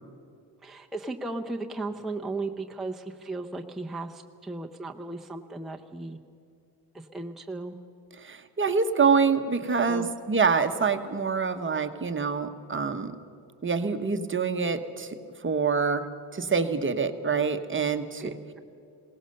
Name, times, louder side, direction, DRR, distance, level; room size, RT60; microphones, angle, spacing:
voice 1, 0.6-6.2 6.9-7.8 9.7-10.1 18.2-18.6, right 2 dB, ahead, 1 dB, 0.7 m, -36 dB
voice 2, 8.2-13.1 13.6-16.0 16.3-18.3, right 5 dB, 30° right, 8 dB, 1.0 m, -26 dB
21.5 x 18.0 x 6.6 m, 2.5 s
cardioid pair, 130°, 42 cm